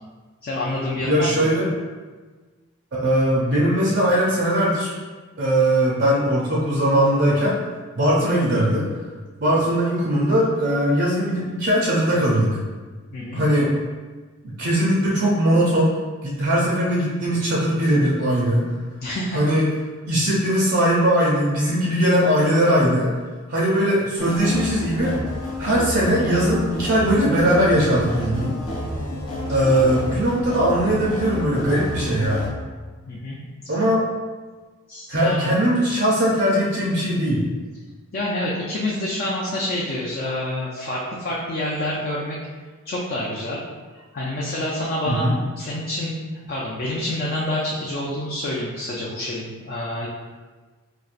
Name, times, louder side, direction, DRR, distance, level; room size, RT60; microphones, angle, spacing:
voice 1, 0.4-1.5 13.1-13.4 19.0-19.4 29.7-30.0 33.1-33.4 33.6-33.7 34.9-35.6 38.1-42.4 42.8-43.6 43.9-45.3 45.6-46.2 46.5-50.1, left 1 dB, 40° left, -5 dB, 0.4 m, -27 dB
voice 2, 1.1-1.7 2.9-4.9 5.4-7.5 8.0-8.9 9.4-12.6 13.3-13.7 14.4-15.9 16.2-18.7 19.3-19.7 20.1-23.1 23.5-25.1 25.6-28.6 29.5-32.4 33.7-34.0 35.1-37.5 45.1-45.3, equal, 50° right, -5 dB, 0.5 m, -20 dB
sound 1, 24.2-32.5, left 1 dB, 85° left, 0.7 m, -30 dB
4.2 x 2.4 x 2.5 m, 1.4 s
head